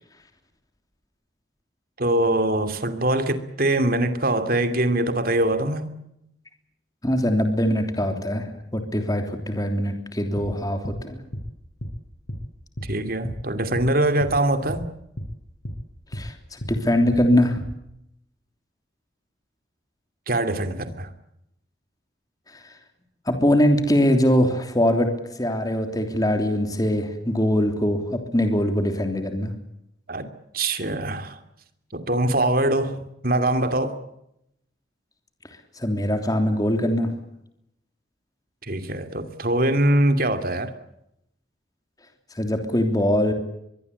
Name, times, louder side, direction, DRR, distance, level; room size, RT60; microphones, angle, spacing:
voice 1, 2.0-5.9 12.8-14.9 20.3-21.1 30.1-30.3 30.5-31.4 31.9-34.0 38.7-40.7, right 1 dB, 55° right, 2.7 m, -23 dB
voice 2, 7.0-11.2 16.1-17.6 23.3-25.1 25.4-29.5 35.8-37.1 42.4-43.3, left 1 dB, 20° left, 3.2 m, -22 dB
sound 1, 10.4-10.5 10.8-11.0 11.3-11.5 11.8-12.0 12.3-12.4 12.8-12.9 13.2-13.4 13.7-13.9 14.2-14.4 14.7-14.8 15.2-15.3 15.6-15.8 16.1-16.3 16.6-16.8 17.1-17.2 17.6-17.7, equal, 60° left, 6.0 m, -33 dB
24.5 x 22.0 x 8.4 m
head